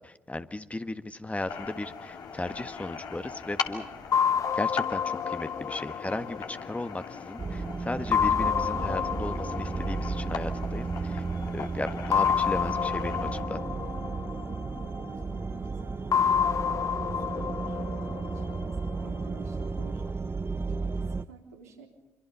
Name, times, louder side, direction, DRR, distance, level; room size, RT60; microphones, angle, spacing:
voice 1, 0.0-3.8 4.1-4.2 4.5-11.2 11.5-13.6, left 2 dB, 15° left, 10 dB, 1.6 m, -36 dB
sound 1, 1.5-13.4, left 6 dB, 60° left, 2.9 m, -40 dB
sound 2, 4.1-7.4 8.1-11.0 12.1-15.2 16.1-19.2, left 7 dB, 45° left, 0.8 m, -29 dB
sound 3, 7.4-21.3, right 4 dB, 30° right, 0.8 m, -34 dB
voice 2, 15.0-18.7 19.0-20.0 20.7-21.9, right 6 dB, 85° right, -1 dB, 4.0 m, -52 dB
27.0 x 25.0 x 5.6 m, 0.98 s
figure-of-eight pair, 45°, 8 cm